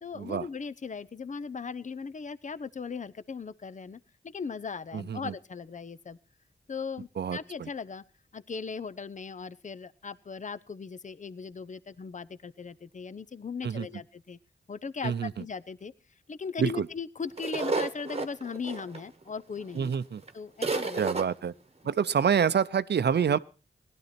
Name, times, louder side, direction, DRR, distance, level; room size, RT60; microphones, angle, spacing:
voice 1, 0.0-6.2 6.7-8.0 8.3-14.4 14.7-15.9 16.3-20.0 20.3-21.0, left 5 dB, 40° left, 0.7 m, -38 dB
voice 2, 4.9-5.3 7.2-7.7 13.6-13.9 15.0-15.3 16.6-16.9 19.7-20.2 21.0-21.5 21.8-23.4, right 7 dB, 65° right, 0.6 m, -27 dB
sound 1, 17.4-19.3 19.9-20.0 20.2-20.3 20.6-21.2, right 3 dB, 35° right, 1.3 m, -31 dB
17.0 x 12.0 x 4.3 m
cardioid pair, 50°, 19 cm